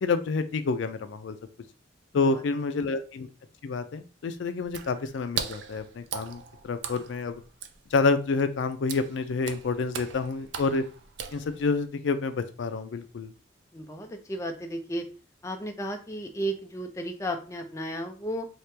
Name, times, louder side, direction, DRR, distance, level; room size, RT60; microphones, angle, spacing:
voice 1, 0.0-1.4 2.1-3.3 3.6-7.4 7.9-10.8 11.3-13.3, left 4 dB, 75° left, 10 dB, 0.4 m, -28 dB
Water / Splash splatter, 4.7-11.9, right 7 dB, 65° right, 0.4 m, -39 dB
voice 2, 13.7-15.1 15.4-18.5, right 1 dB, 15° left, 4 dB, 0.4 m, -34 dB
3.0 x 2.9 x 3.3 m, 0.35 s
head